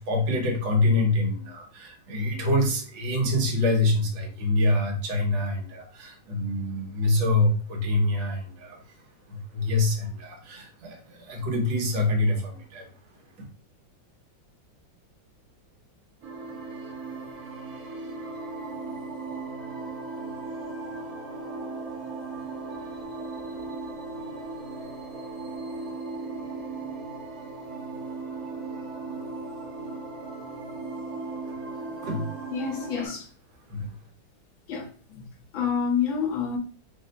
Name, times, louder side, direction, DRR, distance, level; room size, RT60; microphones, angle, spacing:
voice 1, 0.0-8.8 9.3-12.9 13.4-13.5 31.9-32.4 33.0-33.1 33.7-34.0, left 2 dB, 80° right, 1.8 m, -26 dB
sound 1, 16.2-33.1, right 3 dB, 55° right, 1.4 m, -37 dB
voice 2, 32.5-33.3 34.7-35.3 35.5-36.6, left 7 dB, 80° left, 1.7 m, -28 dB
4.6 x 2.1 x 3.9 m
omnidirectional pair, 2.1 m